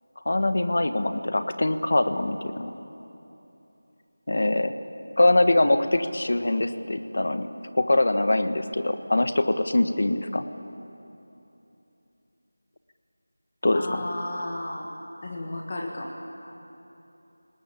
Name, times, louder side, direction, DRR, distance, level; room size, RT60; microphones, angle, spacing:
voice 1, 0.2-2.7 4.3-4.7 5.2-7.5 7.7-10.4 13.6-14.0, left 2 dB, 50° left, 9 dB, 1.4 m, -23 dB
voice 2, 13.7-14.9 15.2-16.1, left 1 dB, 25° left, 0 dB, 1.6 m, -33 dB
29.0 x 19.5 x 10.0 m, 3.0 s
figure-of-eight pair, 180°, 0 cm